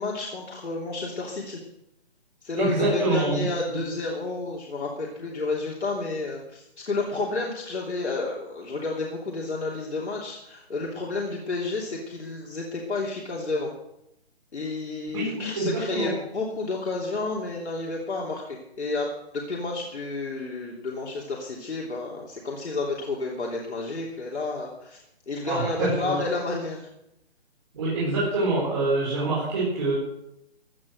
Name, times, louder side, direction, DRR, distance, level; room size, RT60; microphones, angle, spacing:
voice 1, 0.0-1.6 2.4-13.7 14.5-19.1 19.3-25.0 25.3-26.9, left 3 dB, 85° left, -3 dB, 3.2 m, -31 dB
voice 2, 2.6-3.8 15.1-16.1 25.4-26.2 27.7-29.9, right 2 dB, 25° right, -7 dB, 4.5 m, -26 dB
16.0 x 9.1 x 6.5 m, 0.82 s
hypercardioid pair, 175°, 33 cm